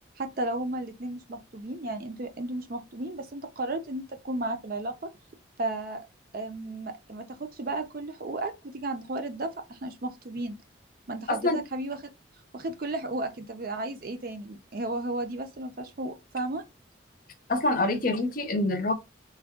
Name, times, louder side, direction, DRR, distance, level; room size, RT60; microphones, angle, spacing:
voice 1, 0.2-4.9 5.6-6.0 6.3-10.6 11.1-12.0 12.5-16.6, right 2 dB, 50° right, 0.5 m, -34 dB
voice 2, 11.3-11.6 17.5-18.9, left 2 dB, 45° left, 0.7 m, -26 dB
3.5 x 2.3 x 3.5 m
head